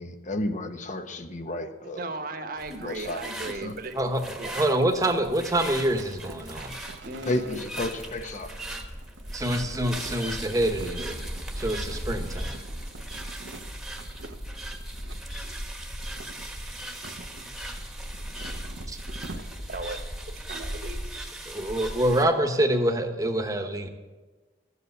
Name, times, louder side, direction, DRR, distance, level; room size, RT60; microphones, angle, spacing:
voice 1, 0.0-2.2 2.8-3.2 3.4-3.7 7.3-8.5, left 1 dB, 40° left, 8 dB, 1.0 m, -32 dB
voice 2, 2.0-4.0 4.4-4.6 7.0-7.6 19.7-20.0 20.5-21.0, right 2 dB, 50° right, 6 dB, 1.3 m, -36 dB
sound 1, 2.6-22.2, right 1 dB, ahead, 1.3 m, -37 dB
voice 3, 3.9-6.8 9.3-11.2 11.5-12.6 18.9-19.0 21.5-23.9, right 1 dB, 20° right, 6 dB, 1.1 m, -26 dB
sound 2, 5.5-19.9, right 2 dB, 80° right, 0.9 m, -46 dB
13.0 x 8.2 x 8.0 m, 1.3 s
head